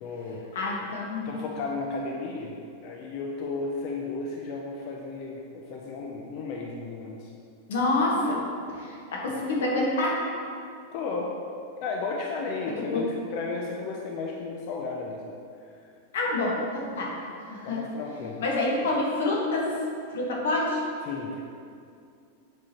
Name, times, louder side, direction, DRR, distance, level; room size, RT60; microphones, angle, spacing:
voice 1, 0.0-0.4 1.2-7.3 10.9-11.3 11.8-15.3 15.6-15.8 17.6-18.4 21.0-21.4, left 3 dB, 35° left, -1 dB, 0.4 m, -34 dB
voice 2, 0.5-1.3 7.7-8.4 8.7-10.2 12.9-13.0 16.1-17.2 17.5-17.8 18.4-19.8 20.1-20.8, left 2 dB, 80° left, -3 dB, 1.4 m, -27 dB
7.4 x 4.7 x 2.9 m, 2.4 s
supercardioid pair, 175°, 0 cm